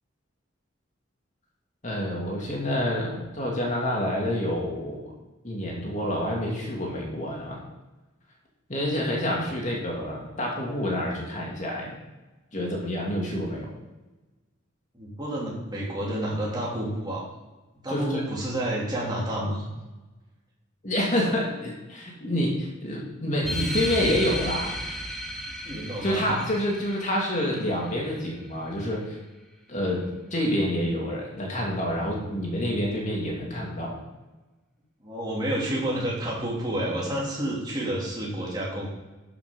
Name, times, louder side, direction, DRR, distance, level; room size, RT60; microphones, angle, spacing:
voice 1, 1.8-5.1 5.4-7.6 8.7-12.0 12.5-13.7 17.9-18.2 20.8-24.7 26.0-29.2 29.7-34.0, left 1 dB, 35° left, -2 dB, 2.4 m, -28 dB
voice 2, 14.9-17.3 17.8-19.6 22.2-22.3 25.6-26.3 35.0-38.9, right 1 dB, 20° right, -5 dB, 3.0 m, -29 dB
sound 1, 23.4-28.4, equal, ahead, 1.2 m, -34 dB
12.0 x 5.8 x 5.3 m, 1.1 s
head